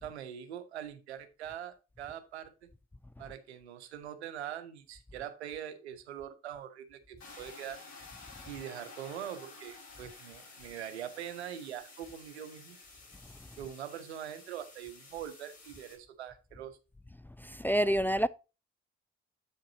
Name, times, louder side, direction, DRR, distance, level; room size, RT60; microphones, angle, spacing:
voice 1, 0.0-2.7 3.2-7.8 8.5-12.8 13.6-16.8, right 10 dB, 85° right, 0.8 m, -43 dB
sound 1, 7.2-16.0, left 3 dB, 55° left, 4.8 m, -52 dB
voice 2, 17.4-18.3, equal, 5° left, 0.3 m, -27 dB
8.2 x 7.4 x 2.7 m
figure-of-eight pair, 40°, 32 cm